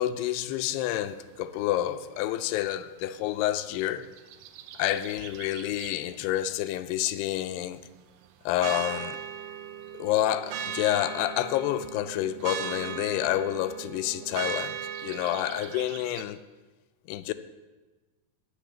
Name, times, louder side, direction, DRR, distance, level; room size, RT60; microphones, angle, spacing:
voice 1, 0.0-4.1 4.8-7.8 8.5-9.2 9.9-16.4 17.1-17.3, left 13 dB, 85° left, 12 dB, 2.6 m, -29 dB
sound 1, 4.0-6.0 8.6-16.2, right 9 dB, 80° right, 2.0 m, -38 dB
10.0 x 6.8 x 8.5 m, 1.3 s
omnidirectional pair, 4.6 m